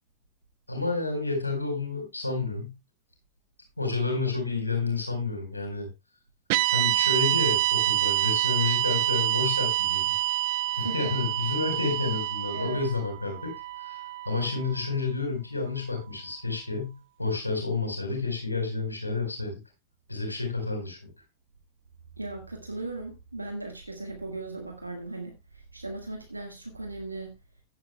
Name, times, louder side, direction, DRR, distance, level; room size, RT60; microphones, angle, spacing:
voice 1, 0.7-2.7 3.8-5.9 6.7-10.1 10.8-13.5 13.8-19.6 20.1-21.0, left 3 dB, 85° left, 3 dB, 4.4 m, -30 dB
sound 1, 6.5-14.8, right 15 dB, 50° right, 0.7 m, -27 dB
voice 2, 10.7-11.3 12.5-12.8 22.2-27.4, right 2 dB, 80° right, 3 dB, 1.6 m, -37 dB
15.5 x 10.5 x 2.3 m, 0.24 s
figure-of-eight pair, 90°, 0 cm